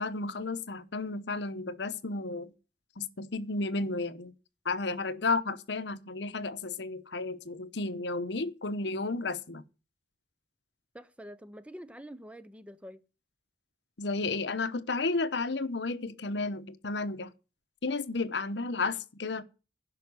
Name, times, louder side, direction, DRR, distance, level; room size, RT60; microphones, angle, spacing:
voice 1, 0.0-2.5 3.0-4.3 4.6-9.6 14.0-17.3 17.8-19.4, left 3 dB, 70° left, 0.9 m, -32 dB
voice 2, 10.9-13.0, equal, 5° right, 0.6 m, -46 dB
11.0 x 5.8 x 8.3 m
head